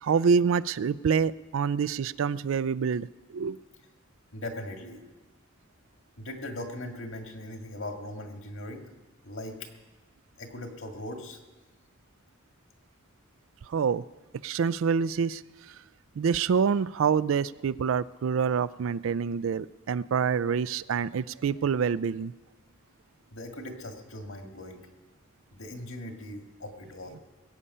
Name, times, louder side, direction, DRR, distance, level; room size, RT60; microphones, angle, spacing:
voice 1, 0.0-3.6 13.7-14.0 14.4-15.4 15.7-15.8 16.2-22.3, right 6 dB, 70° right, 18 dB, 0.4 m, -26 dB
voice 2, 4.3-5.0 6.2-8.9 9.2-9.7 10.4-11.4 23.3-24.8 25.5-27.2, left 1 dB, 75° left, 4 dB, 1.9 m, -39 dB
21.5 x 8.6 x 5.5 m, 1.2 s
head